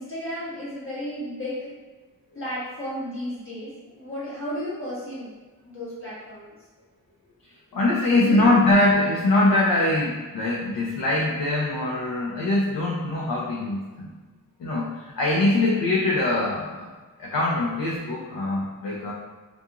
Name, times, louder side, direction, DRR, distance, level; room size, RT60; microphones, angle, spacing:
voice 1, 0.0-1.7 2.3-5.3 5.7-6.5 8.2-8.5, equal, 35° left, -9 dB, 1.0 m, -33 dB
voice 2, 7.7-14.1 14.6-16.9 17.2-19.1, left 2 dB, 75° left, -4 dB, 0.5 m, -22 dB
2.5 x 2.3 x 2.8 m, 1.3 s
wide cardioid pair, 165°, 36 cm